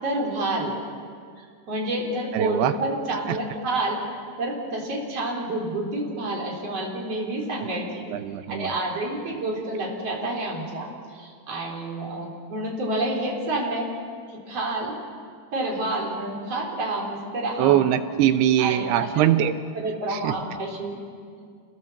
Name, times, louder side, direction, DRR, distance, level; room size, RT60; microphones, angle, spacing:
voice 1, 0.0-0.7 1.4-4.0 4.4-8.0 8.5-13.9 14.3-15.0 15.5-17.8 18.6-19.2 19.7-21.0, right 2 dB, 35° right, -1 dB, 4.3 m, -29 dB
voice 2, 2.3-2.7 3.3-3.4 8.1-8.7 17.6-19.5 20.1-20.3, right 11 dB, 75° right, 10 dB, 2.6 m, -22 dB
28.0 x 20.0 x 7.1 m, 2.1 s
omnidirectional pair, 5.1 m